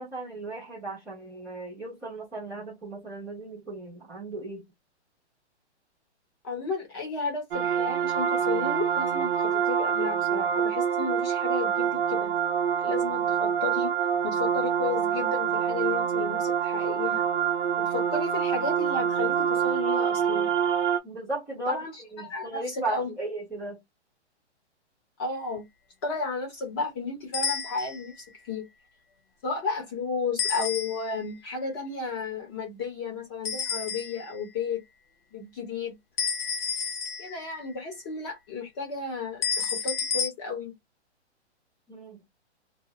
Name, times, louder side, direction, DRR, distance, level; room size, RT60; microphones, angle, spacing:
voice 1, 0.0-4.6 21.0-23.8 41.9-42.2, right 2 dB, 10° right, 0.8 m, -36 dB
voice 2, 6.4-12.3 12.8-13.9 14.2-17.2 17.8-20.5 21.6-23.1 25.2-25.6 26.0-28.1 28.5-28.6 29.4-34.8 35.3-35.9 37.2-40.7, left 4 dB, 20° left, 1.0 m, -33 dB
sound 1, 7.5-21.0, right 8 dB, 50° right, 0.6 m, -26 dB
sound 2, 27.3-28.1 30.4-31.3 33.4-34.4 36.2-37.6 39.4-40.3, left 7 dB, 55° left, 0.6 m, -30 dB
2.6 x 2.3 x 2.9 m
hypercardioid pair, 165°, 34 cm